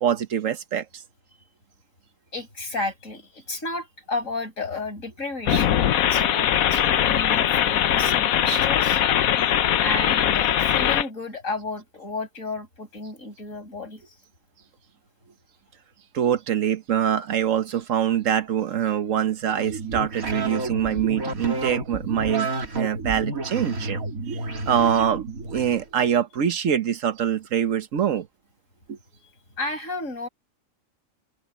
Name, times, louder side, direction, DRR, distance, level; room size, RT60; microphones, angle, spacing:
voice 1, 0.0-1.0 16.1-24.0 24.3-24.4 24.7-28.3 28.9-29.0, right 9 dB, 70° right, 1.4 m, -24 dB
voice 2, 2.3-9.0 9.8-14.2 29.1-29.3 29.6-30.3, left 2 dB, 70° left, 6.7 m, -32 dB
sound 1, 5.4-11.0, left 10 dB, 90° left, 1.2 m, -21 dB
sound 2, 19.5-25.8, right 3 dB, 90° right, 3.1 m, -30 dB
open air
omnidirectional pair, 1.4 m